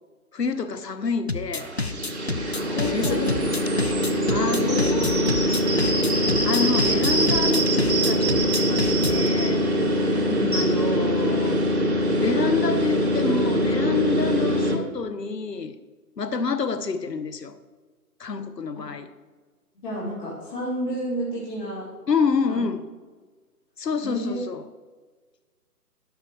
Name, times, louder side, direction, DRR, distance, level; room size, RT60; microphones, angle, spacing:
voice 1, 0.3-1.7 2.9-3.2 4.3-5.4 6.4-9.6 10.5-11.6 12.2-15.8 16.2-17.6 18.2-19.1 22.1-22.9 23.8-24.6, left 5 dB, 80° left, 11 dB, 1.0 m, -28 dB
sound 1, 1.3-9.3, left 3 dB, 45° left, 0.4 m, -29 dB
sound 2, 1.6-14.8, equal, 40° right, 1.5 m, -23 dB
voice 2, 2.7-3.3 4.6-4.8 10.1-10.7 18.8-18.9 19.8-21.8 22.5-22.7 24.0-24.4, left 1 dB, 30° left, -8 dB, 2.6 m, -30 dB
11.5 x 5.7 x 4.7 m, 1.4 s
figure-of-eight pair, 155°, 48 cm